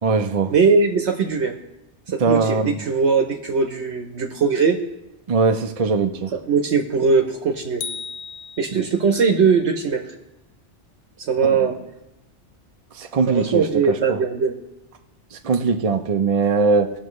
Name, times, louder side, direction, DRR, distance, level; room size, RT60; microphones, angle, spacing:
voice 1, 0.0-0.5 2.2-2.8 5.3-6.3 8.7-8.8 11.5-11.7 12.9-14.2 15.3-16.9, right 4 dB, 40° right, 6 dB, 0.6 m, -21 dB
voice 2, 0.5-1.5 2.1-4.8 6.5-7.8 8.6-10.0 11.2-11.7 13.3-14.5, right 5 dB, 70° right, 4 dB, 1.1 m, -20 dB
sound 1, 7.8-9.2, left 6 dB, 80° left, 0.9 m, -35 dB
18.0 x 6.3 x 3.1 m, 0.92 s
omnidirectional pair, 1.2 m